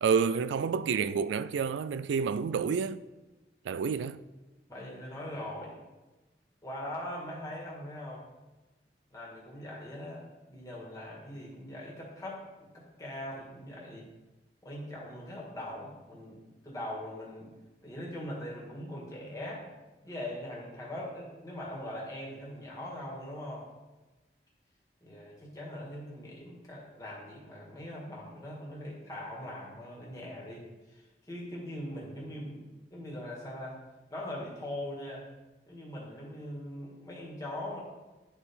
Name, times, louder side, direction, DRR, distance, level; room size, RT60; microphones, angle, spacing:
voice 1, 0.0-3.0 3.7-4.2, right 6 dB, 85° right, 0.3 m, -29 dB
voice 2, 4.7-5.8 6.6-8.2 9.1-14.1 14.6-17.5 17.8-19.7 20.0-23.7 25.0-30.6 30.9-32.6 32.9-33.8 34.1-35.2 35.7-37.8, left 1 dB, 20° left, 1.7 m, -41 dB
10.5 x 4.3 x 3.6 m
head